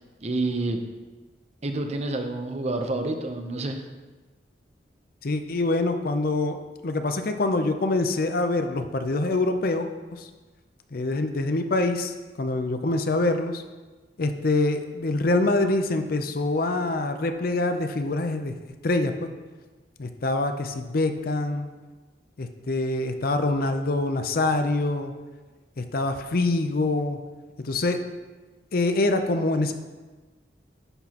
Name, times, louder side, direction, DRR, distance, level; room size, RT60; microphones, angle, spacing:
voice 1, 0.2-0.8 1.6-3.8, right 2 dB, 35° right, 5 dB, 0.7 m, -28 dB
voice 2, 5.2-6.6 6.8-9.9 10.2-10.3 10.9-13.6 14.2-18.5 18.8-19.3 20.0-21.7 22.4-25.1 25.8-27.2 27.6-28.0 28.7-29.7, left 2 dB, 55° left, 7 dB, 0.6 m, -25 dB
11.0 x 6.0 x 2.9 m, 1.3 s
head